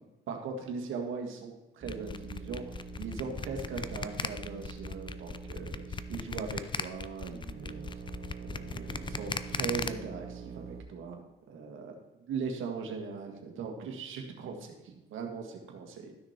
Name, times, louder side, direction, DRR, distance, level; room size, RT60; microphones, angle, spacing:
voice 1, 0.3-7.9 8.4-11.2 11.5-12.0 12.3-16.1, right 5 dB, 80° right, 3 dB, 1.7 m, -39 dB
sound 1, 1.8-6.6 7.3-10.8, right 5 dB, 50° right, 0.9 m, -45 dB
sound 2, 1.9-9.9, left 5 dB, 25° left, 0.5 m, -37 dB
12.5 x 6.1 x 4.4 m, 1.0 s
cardioid pair, 90°, 20 cm